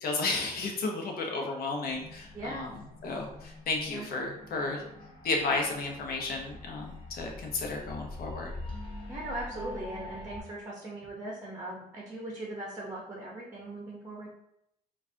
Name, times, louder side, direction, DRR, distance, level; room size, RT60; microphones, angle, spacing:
voice 1, 0.0-4.8 5.2-8.5, left 3 dB, 60° left, 1 dB, 0.9 m, -33 dB
sound 1, 1.9-10.4, left 2 dB, 30° left, 0.7 m, -44 dB
voice 2, 2.3-2.6 3.9-4.1 9.1-14.3, right 1 dB, 20° right, -3 dB, 0.8 m, -39 dB
4.6 x 2.5 x 2.7 m, 0.78 s
cardioid pair, 110°, 17 cm